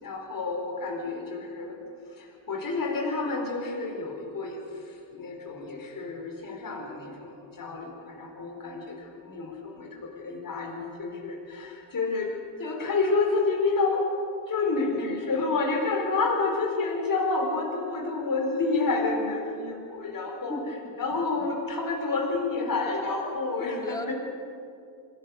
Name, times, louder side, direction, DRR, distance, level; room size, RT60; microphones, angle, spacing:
voice 1, 0.0-1.8 2.1-14.1 14.5-20.6 21.0-24.1, left 3 dB, 45° left, 1 dB, 4.5 m, -29 dB
voice 2, 20.5-20.9 22.6-22.9 23.6-24.1, left 1 dB, 10° left, 3 dB, 2.3 m, -37 dB
26.0 x 17.0 x 6.6 m, 2.5 s
cardioid pair, 110°, 47 cm